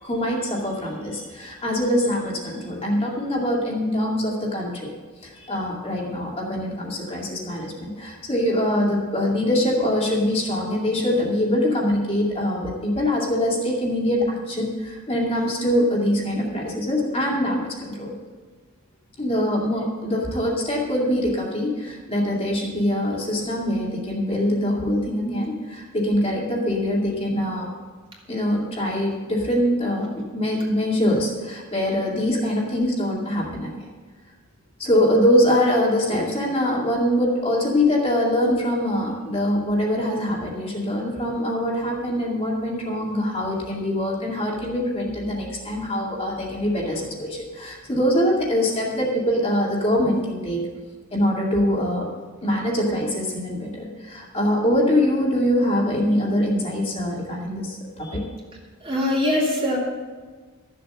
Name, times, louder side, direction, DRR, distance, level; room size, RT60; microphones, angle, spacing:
voice 1, 0.0-4.9 5.2-18.1 19.2-27.7 28.3-33.9 34.8-50.7 51.1-52.1 52.4-58.2, left 1 dB, 30° left, -3 dB, 2.3 m, -23 dB
voice 2, 58.8-59.8, left 1 dB, 25° right, -3 dB, 2.3 m, -23 dB
13.0 x 7.6 x 6.7 m, 1.4 s
head